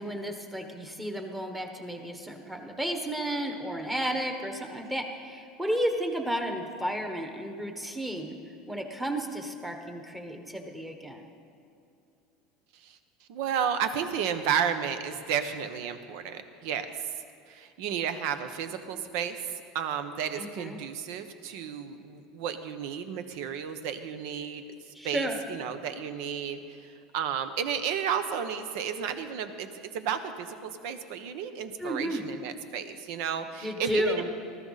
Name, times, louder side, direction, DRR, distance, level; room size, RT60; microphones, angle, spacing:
voice 1, 0.0-8.4 8.7-11.3 20.3-20.8 24.9-25.4 31.8-32.2 33.6-34.3, equal, 5° right, 4 dB, 1.2 m, -32 dB
voice 2, 13.3-17.1 17.5-19.4 19.7-34.3, right 8 dB, 65° right, 9 dB, 1.1 m, -32 dB
20.0 x 13.5 x 4.2 m, 2.6 s
cardioid pair, 155°, 0 cm